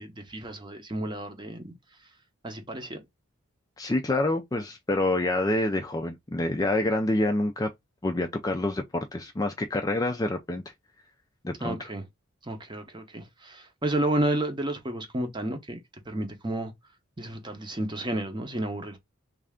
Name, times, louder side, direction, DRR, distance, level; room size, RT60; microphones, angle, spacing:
voice 1, 0.0-1.7 2.4-3.0 11.6-12.0 12.4-15.8 16.1-16.7 17.2-19.0, right 1 dB, 20° right, 0.7 m, -31 dB
voice 2, 3.8-7.7 8.0-10.6 11.4-11.9, left 2 dB, 15° left, 0.3 m, -27 dB
3.2 x 2.5 x 3.5 m
head